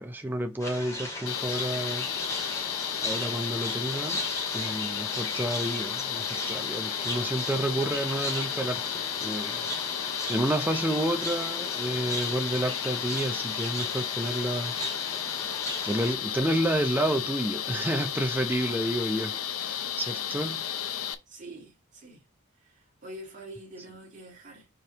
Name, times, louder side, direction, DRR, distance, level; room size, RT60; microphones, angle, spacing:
voice 1, 0.0-2.1 3.0-4.2 4.5-9.7 10.0-14.7 15.8-20.6, right 1 dB, 10° right, 0.6 m, -30 dB
sound 1, 0.6-16.1, left 1 dB, 15° left, 2.6 m, -37 dB
Old computer motor, 1.3-21.1, left 9 dB, 85° left, 0.7 m, -33 dB
voice 2, 21.3-22.2 22.6-24.7, right 1 dB, 35° right, 1.9 m, -46 dB
5.3 x 4.6 x 3.9 m
head